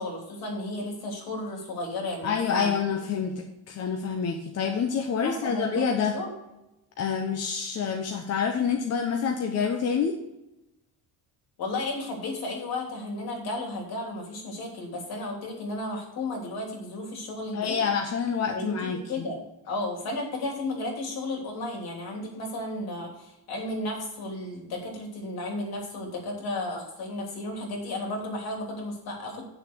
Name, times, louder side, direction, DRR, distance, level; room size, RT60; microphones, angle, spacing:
voice 1, 0.0-2.8 5.2-6.3 11.6-17.8 18.4-29.4, left 2 dB, 60° left, 1 dB, 3.1 m, -33 dB
voice 2, 2.2-6.1 7.0-10.1 17.5-19.3, left 6 dB, 40° left, 3 dB, 0.8 m, -27 dB
9.0 x 6.6 x 4.5 m, 0.94 s
cardioid pair, 175°, 41 cm